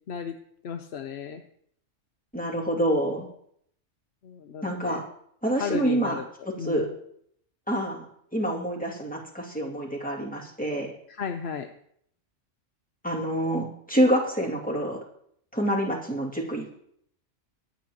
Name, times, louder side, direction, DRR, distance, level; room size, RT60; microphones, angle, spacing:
voice 1, 0.6-1.4 4.2-5.0 5.6-6.2 6.6-6.9 11.1-11.7, left 7 dB, 60° left, 6 dB, 1.0 m, -34 dB
voice 2, 2.3-3.3 4.6-5.0 5.4-6.2 6.4-6.9 7.7-8.0 8.3-10.9 13.0-15.0 15.5-16.7, right 1 dB, 5° left, -3 dB, 2.5 m, -27 dB
23.5 x 8.6 x 3.0 m, 0.68 s
omnidirectional pair, 1.3 m